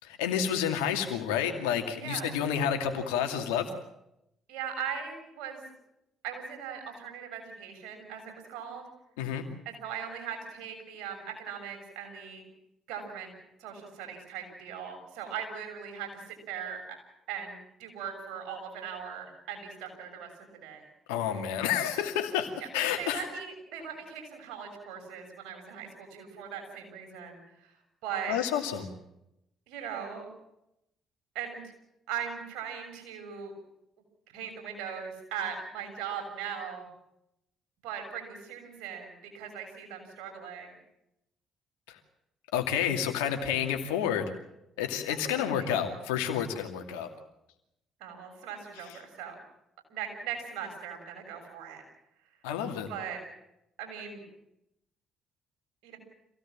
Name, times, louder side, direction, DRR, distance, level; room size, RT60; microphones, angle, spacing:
voice 1, 0.0-3.7 9.2-9.5 21.1-23.2 28.3-28.9 41.9-42.0 42.5-44.3 44.8-47.1 52.4-52.9, left 9 dB, 85° left, 5 dB, 2.4 m, -30 dB
voice 2, 2.0-2.4 4.5-5.6 6.2-8.9 9.6-12.4 12.9-13.3 13.6-16.8 17.3-20.3 20.6-20.8 22.6-27.7 28.0-28.4 29.7-30.2 31.3-31.6 32.1-33.5 34.3-36.9 37.8-40.7 44.8-45.7 48.0-49.3 49.9-51.8 52.9-53.2 53.8-54.3 55.8-56.0, right 7 dB, 75° right, 4 dB, 6.7 m, -39 dB
26.5 x 17.0 x 7.5 m, 0.84 s
hypercardioid pair, 55°, 0 cm